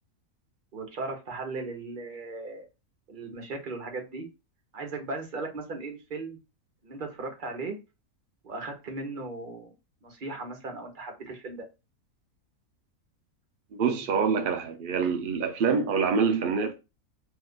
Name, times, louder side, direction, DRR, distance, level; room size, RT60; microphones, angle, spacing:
voice 1, 0.7-2.6 3.1-4.3 4.7-6.4 6.8-7.7 8.4-9.7 10.0-11.6, right 3 dB, 45° right, 0.8 m, -37 dB
voice 2, 13.7-16.7, right 5 dB, 80° right, 0.4 m, -26 dB
2.8 x 2.4 x 3.5 m
omnidirectional pair, 1.5 m